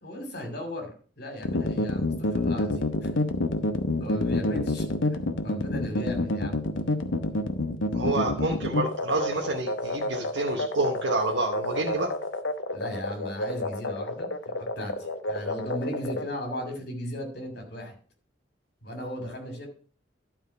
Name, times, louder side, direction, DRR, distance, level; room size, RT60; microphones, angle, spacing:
voice 1, 0.0-0.9 1.2-3.1 4.0-4.9 5.4-6.6 12.7-17.9 18.8-19.7, equal, 55° left, 4 dB, 2.6 m, -36 dB
sound 1, 1.4-16.2, left 2 dB, 90° left, 1.0 m, -28 dB
voice 2, 7.9-12.1, right 2 dB, 70° right, 0 dB, 1.0 m, -28 dB
11.5 x 4.5 x 5.7 m, 0.42 s
head